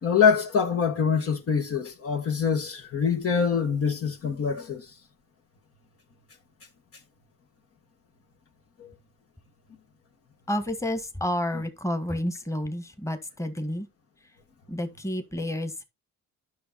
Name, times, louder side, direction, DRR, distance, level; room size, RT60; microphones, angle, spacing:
voice 1, 0.0-4.9 8.8-8.9, left 6 dB, 50° left, 1.6 m, -24 dB
voice 2, 10.5-13.9 14.7-15.8, left 1 dB, 10° left, 1.6 m, -30 dB
10.0 x 6.1 x 4.2 m
cardioid pair, 90°, 30 cm